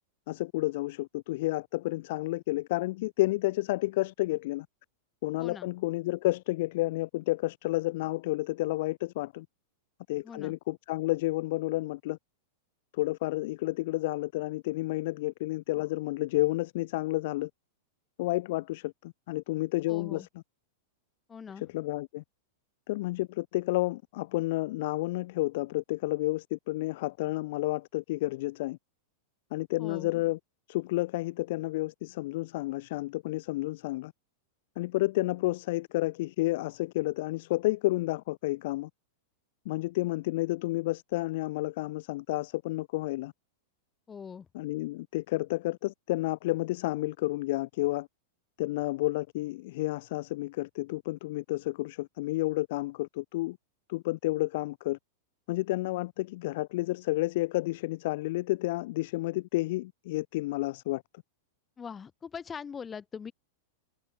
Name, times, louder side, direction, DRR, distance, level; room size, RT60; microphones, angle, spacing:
voice 1, 0.3-4.7 5.2-9.5 10.1-12.2 12.9-17.5 18.2-20.3 21.6-22.2 22.9-28.8 29.5-30.4 30.7-34.1 34.8-38.9 39.7-43.3 44.5-48.1 48.6-53.6 53.9-55.0 55.5-61.0, left 19 dB, 55° left, 0.3 m, -31 dB
voice 2, 5.4-5.7 10.2-10.5 19.9-20.3 21.3-21.6 29.8-30.1 44.1-44.5 61.8-63.3, left 6 dB, 20° left, 4.7 m, -42 dB
figure-of-eight pair, 95°, 0 cm